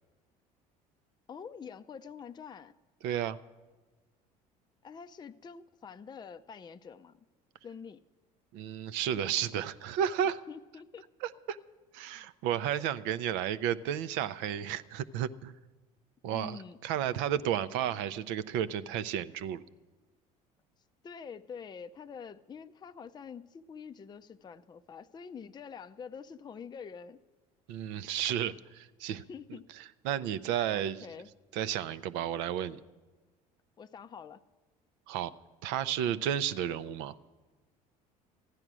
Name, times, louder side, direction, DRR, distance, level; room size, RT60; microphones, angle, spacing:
voice 1, 1.3-2.7 4.8-7.2 7.6-8.0 10.5-11.1 16.3-16.8 21.0-27.2 29.3-29.6 30.7-31.3 33.8-34.4, left 6 dB, 20° left, 9 dB, 0.4 m, -46 dB
voice 2, 3.0-3.4 8.5-10.4 11.2-11.6 11.9-15.5 16.2-19.6 27.7-29.2 30.0-31.1 31.5-32.8 35.1-35.3 35.6-37.2, right 10 dB, 65° right, 14 dB, 0.5 m, -32 dB
14.5 x 10.5 x 6.1 m, 1.3 s
hypercardioid pair, 65°, 20 cm